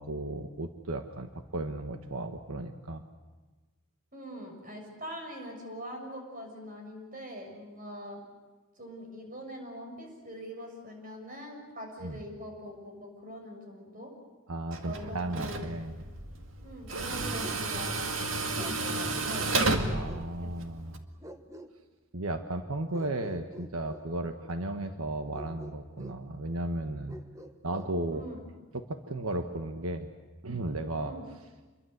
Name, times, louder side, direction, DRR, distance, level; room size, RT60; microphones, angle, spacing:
voice 1, 0.0-3.0 12.0-12.2 14.5-16.0 19.9-21.0 22.1-27.2 27.6-28.2 28.7-30.1 30.4-31.1, right 2 dB, 85° right, 7 dB, 1.4 m, -35 dB
voice 2, 4.1-8.2 8.8-14.1 14.8-15.7 16.6-19.5 28.1-28.5 31.0-31.3, equal, 40° right, 2 dB, 6.6 m, -43 dB
Tools, 14.7-21.0, right 2 dB, 70° right, 2.1 m, -32 dB
Bark, 17.4-17.7 18.5-18.8 19.8-20.5 21.2-21.7 22.9-24.1 25.3-26.2 27.1-27.9, right 1 dB, 15° right, 1.2 m, -47 dB
27.5 x 22.5 x 8.0 m, 1.2 s
head